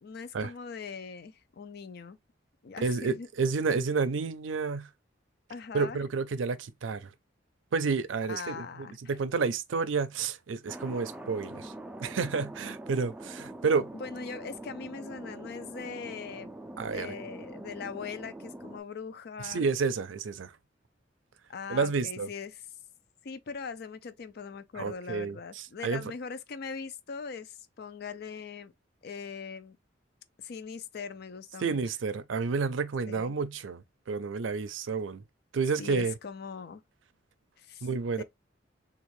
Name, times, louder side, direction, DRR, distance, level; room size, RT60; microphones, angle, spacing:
voice 1, 0.0-2.2 2.6-3.3 5.5-6.0 8.3-9.2 13.9-16.5 16.8-19.7 21.5-22.6 23.2-28.7 29.0-29.8 30.4-31.8 33.1-33.4 35.8-36.8 37.6-37.9 38.2-38.3, left 5 dB, 55° left, 0.4 m, -41 dB
voice 2, 2.8-4.9 5.7-7.1 7.7-11.7 12.0-13.9 16.8-17.2 19.4-20.5 21.7-22.3 24.8-26.0 31.6-35.2 35.5-36.1 37.8-38.2, right 4 dB, 90° right, 0.5 m, -30 dB
Thunder, 10.7-18.8, right 1 dB, 5° right, 0.3 m, -44 dB
3.6 x 2.4 x 3.1 m
head